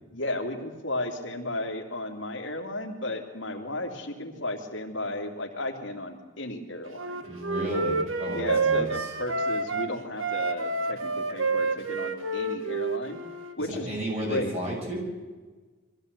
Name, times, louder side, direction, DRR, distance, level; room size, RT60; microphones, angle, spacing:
voice 1, 0.1-7.2 8.3-13.2 13.6-14.5, left 1 dB, 75° left, 3 dB, 2.9 m, -34 dB
Wind instrument woodwind instrument, 7.0-9.9 10.2-13.5, right 3 dB, 90° right, 1.6 m, -29 dB
voice 2, 7.3-9.1 13.6-15.0, equal, 30° right, -2 dB, 7.8 m, -33 dB
23.0 x 15.0 x 8.2 m, 1.3 s
head